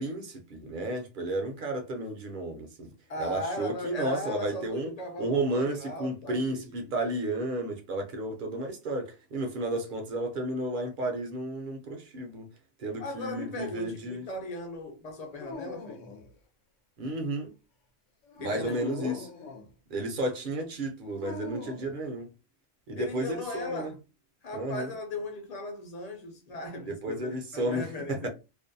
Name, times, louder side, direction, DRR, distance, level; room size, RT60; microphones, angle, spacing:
voice 1, 0.0-2.9 3.2-4.9 5.2-12.5 12.8-14.3 17.0-17.5 18.4-19.3 19.9-22.3 22.9-23.9 24.5-24.9 26.9-28.3, right 1 dB, 55° right, 0.6 m, -32 dB
voice 2, 3.1-6.9 13.0-16.0 18.4-19.2 22.9-24.0 24.4-28.3, left 1 dB, 45° left, 0.6 m, -37 dB
Dog, 15.3-16.3 18.2-19.7 21.2-22.0, left 3 dB, 85° left, 1.0 m, -43 dB
2.5 x 2.1 x 2.6 m
omnidirectional pair, 1.2 m